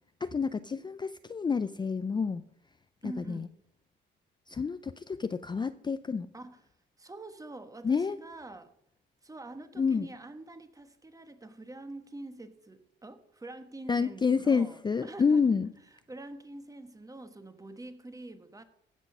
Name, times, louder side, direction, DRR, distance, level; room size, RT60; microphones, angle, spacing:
voice 1, 0.2-2.4 3.0-3.5 4.5-6.3 7.8-8.2 9.8-10.1 13.9-15.7, left 5 dB, 20° left, 0.4 m, -28 dB
voice 2, 3.0-3.5 6.3-6.6 7.0-8.7 9.2-15.4 16.1-18.6, right 2 dB, 15° right, 1.2 m, -45 dB
15.5 x 6.2 x 5.5 m
cardioid pair, 90°, 20 cm